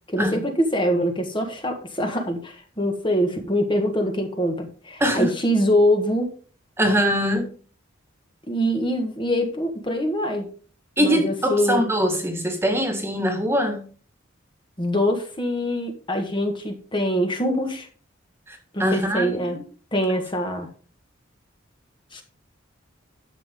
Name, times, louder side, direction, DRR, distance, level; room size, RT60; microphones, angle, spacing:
voice 1, 0.1-6.3 8.5-10.5 11.0-11.8 14.8-17.9 18.7-19.6 19.9-20.7 22.1-22.2, equal, 25° left, 1.6 m, -24 dB
voice 2, 6.8-7.5 11.0-13.8 18.5-19.6, equal, 10° right, 1.8 m, -23 dB
12.0 x 7.4 x 3.8 m
head